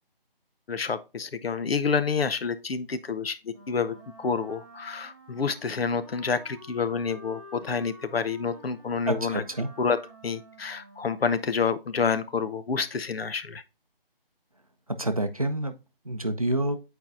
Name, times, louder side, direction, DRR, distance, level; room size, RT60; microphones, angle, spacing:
voice 1, 0.7-9.4 9.8-10.0 10.2-13.6, left 5 dB, 80° left, 0.7 m, -28 dB
Wind instrument woodwind instrument, 3.5-11.8, equal, 15° right, 1.3 m, -50 dB
voice 2, 9.1-9.7 15.0-15.7 16.1-16.8, right 1 dB, 40° right, 0.5 m, -27 dB
8.3 x 4.5 x 2.5 m
figure-of-eight pair, 175°, 30 cm